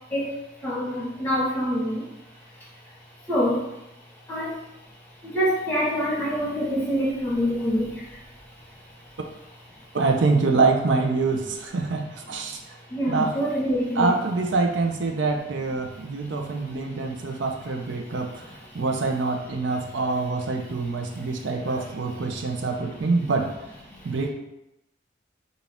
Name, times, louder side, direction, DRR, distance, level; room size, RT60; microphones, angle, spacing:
voice 1, 0.1-2.0 3.3-3.7 4.3-4.6 5.2-8.1 12.9-14.1, equal, 10° left, -6 dB, 1.5 m, -25 dB
voice 2, 9.9-12.6 13.1-13.4 14.0-23.5 24.0-24.3, right 3 dB, 80° right, 3 dB, 0.5 m, -25 dB
6.0 x 2.3 x 3.5 m, 0.89 s
head